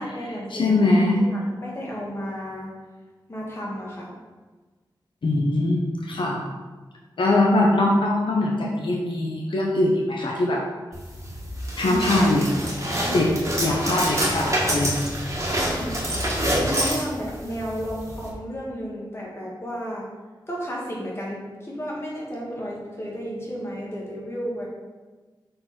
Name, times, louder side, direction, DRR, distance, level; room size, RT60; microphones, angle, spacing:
voice 1, 0.0-0.7 1.1-2.7 3.3-4.1 11.8-12.0 15.4-16.0 16.6-20.1 20.5-24.7, equal, 30° left, -4 dB, 1.8 m, -33 dB
voice 2, 0.5-1.2 5.2-6.5 7.2-10.6 11.8-12.5 13.1-13.3 13.6-15.0, left 2 dB, 80° left, -2 dB, 0.8 m, -22 dB
sound 1, 10.9-18.3, equal, 35° right, 1.6 m, -27 dB
6.6 x 4.0 x 4.3 m, 1.3 s
wide cardioid pair, 85°, 8 cm